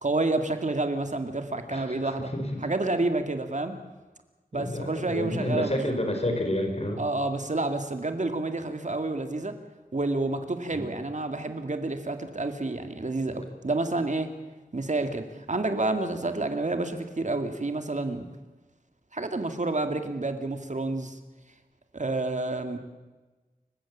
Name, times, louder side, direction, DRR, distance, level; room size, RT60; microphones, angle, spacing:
voice 1, 0.0-2.3 2.6-3.8 4.5-5.8 7.0-9.6 9.9-14.3 14.7-18.3 19.1-21.2 21.9-22.8, right 2 dB, 55° right, 7 dB, 2.1 m, -29 dB
voice 2, 1.7-2.7 4.5-7.0 10.7-10.9, left 1 dB, 45° left, 4 dB, 4.2 m, -30 dB
29.0 x 16.0 x 7.4 m, 1.2 s
wide cardioid pair, 70°, 15 cm